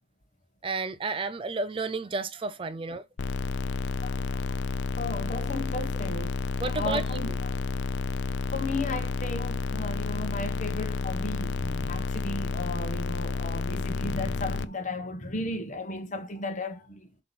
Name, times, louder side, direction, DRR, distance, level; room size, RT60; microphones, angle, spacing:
voice 1, 0.6-3.1 6.6-7.0, right 3 dB, 25° right, 0.4 m, -31 dB
sound 1, 3.2-14.6, left 4 dB, 60° left, 0.5 m, -30 dB
voice 2, 3.6-4.6 5.0-7.6 8.3-17.1, left 2 dB, 40° left, 1.1 m, -35 dB
7.4 x 3.0 x 6.0 m
head